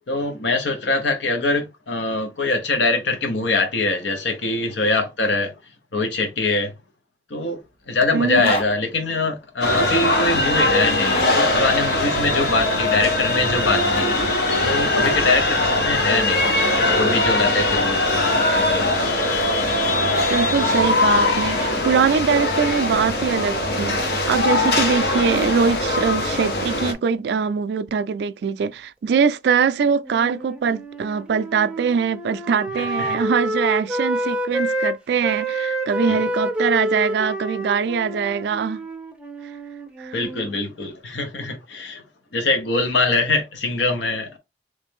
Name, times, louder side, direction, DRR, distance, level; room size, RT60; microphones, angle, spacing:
voice 1, 0.1-5.5 5.9-6.7 7.3-7.6 7.9-14.1 14.6-16.5 16.8-18.0 32.8-33.2 36.1-36.2 40.1-42.0 42.3-44.4, left 3 dB, 85° left, 0.9 m, -23 dB
voice 2, 8.1-8.5 20.3-38.8 40.0-40.2, right 6 dB, 70° right, 0.3 m, -22 dB
Zipper (clothing), 8.3-8.7 10.8-11.3 13.4-14.3 16.2-17.3, equal, 35° left, 0.7 m, -30 dB
sound 1, 9.6-26.9, left 2 dB, 60° left, 0.9 m, -21 dB
Wind instrument woodwind instrument, 30.0-34.9 35.2-40.5, right 1 dB, 5° right, 0.5 m, -28 dB
3.3 x 3.1 x 3.5 m
head